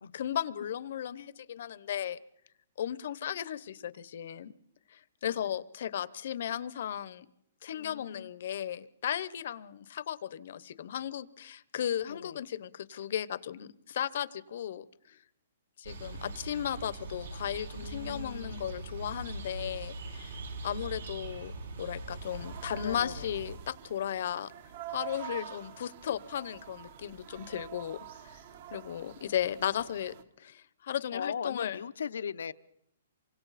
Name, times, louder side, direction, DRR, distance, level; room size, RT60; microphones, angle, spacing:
voice 1, 0.1-2.2 2.8-4.5 4.9-7.3 7.6-15.2 15.8-21.5 21.8-24.5 24.9-28.0 28.3-28.4 28.7-31.8, left 10 dB, 50° left, 18 dB, 0.8 m, -35 dB
voice 2, 7.7-8.3 12.1-12.4 17.8-18.7 22.8-23.3 31.1-32.5, left 7 dB, 85° left, 14 dB, 0.8 m, -39 dB
sound 1, 15.8-23.6, right 2 dB, 75° right, 6.7 m, -42 dB
sound 2, 22.2-30.2, right 12 dB, 40° right, 1.3 m, -47 dB
28.0 x 25.0 x 4.2 m, 0.73 s
hypercardioid pair, 175°, 0 cm